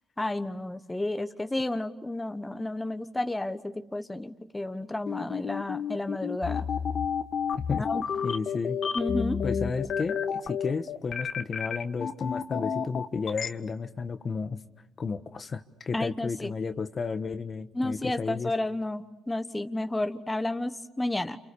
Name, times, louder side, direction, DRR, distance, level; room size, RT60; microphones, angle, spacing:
voice 1, 0.2-6.7 7.8-8.0 8.9-9.4 15.9-16.5 17.7-21.4, left 2 dB, 10° left, 8 dB, 1.3 m, -31 dB
sound 1, 5.1-13.5, left 7 dB, 60° left, 1.4 m, -30 dB
voice 2, 7.6-7.9 8.2-8.8 9.4-14.6 15.0-18.5, left 5 dB, 40° left, 9 dB, 1.4 m, -33 dB
29.5 x 28.5 x 7.0 m, 0.92 s
cardioid pair, 90°, 0 cm